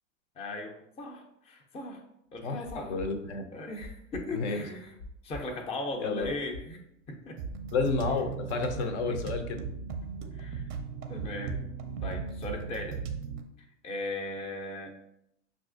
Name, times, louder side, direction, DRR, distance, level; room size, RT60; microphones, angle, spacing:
voice 1, 0.4-2.0 2.3-2.9 3.5-5.0 5.2-7.4 10.3-10.6 11.1-11.6 12.0-13.0 13.8-14.9, left 2 dB, 15° left, 2 dB, 0.5 m, -38 dB
voice 2, 2.4-3.4 4.3-4.7 6.0-6.3 7.7-9.6, left 4 dB, 60° left, 7 dB, 0.6 m, -31 dB
sound 1, 2.6-5.6 5.9-7.8, left 3 dB, 85° left, 1.1 m, -45 dB
sound 2, 7.4-13.4, right 5 dB, 35° right, 0.5 m, -37 dB
5.7 x 2.5 x 2.5 m, 0.80 s
hypercardioid pair, 90°, 38 cm